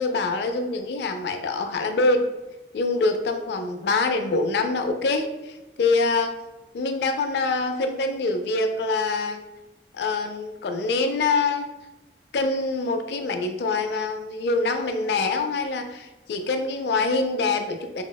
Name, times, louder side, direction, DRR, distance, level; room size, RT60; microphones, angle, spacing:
voice 1, 0.0-2.2 2.7-6.3 6.7-9.4 9.9-11.7 12.3-18.0, left 3 dB, 70° left, 7 dB, 0.3 m, -25 dB
4.2 x 2.0 x 2.2 m, 1.0 s
head